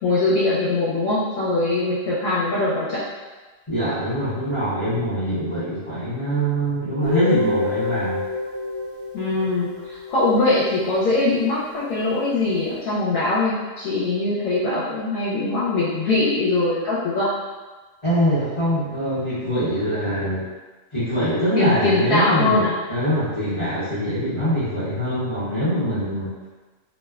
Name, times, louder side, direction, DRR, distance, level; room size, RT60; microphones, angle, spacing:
voice 1, 0.0-3.0 9.1-17.3 21.5-22.7, left 2 dB, 80° left, -9 dB, 1.0 m, -22 dB
voice 2, 3.7-8.2 18.0-20.4 20.9-26.3, equal, 25° left, -12 dB, 0.7 m, -23 dB
Guitar, 7.0-10.9, left 2 dB, 65° right, 1.2 m, -27 dB
2.8 x 2.1 x 2.3 m, 1.3 s
omnidirectional pair, 1.5 m